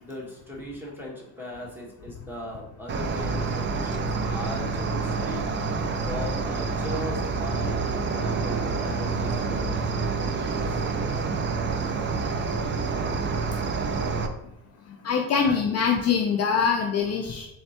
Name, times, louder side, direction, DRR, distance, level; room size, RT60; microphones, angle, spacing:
voice 1, 0.0-7.8 8.1-10.6 15.3-15.7, equal, 5° right, -3 dB, 1.3 m, -38 dB
Cricket, 2.9-14.3, right 4 dB, 30° right, 0.4 m, -28 dB
voice 2, 15.0-17.5, left 6 dB, 40° left, 2 dB, 0.5 m, -23 dB
4.2 x 3.2 x 2.9 m, 0.85 s
cardioid pair, 100°, 38 cm